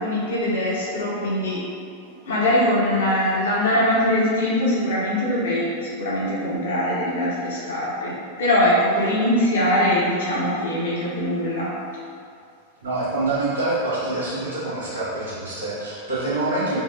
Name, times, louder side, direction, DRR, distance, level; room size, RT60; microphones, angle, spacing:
voice 1, 0.0-1.6 2.3-5.6 6.0-8.1 8.4-11.7, left 1 dB, 65° left, -8 dB, 1.0 m, -22 dB
voice 2, 12.8-16.8, right 2 dB, 70° right, -10 dB, 1.3 m, -26 dB
4.5 x 2.3 x 2.3 m, 2.3 s
figure-of-eight pair, 90°, 0 cm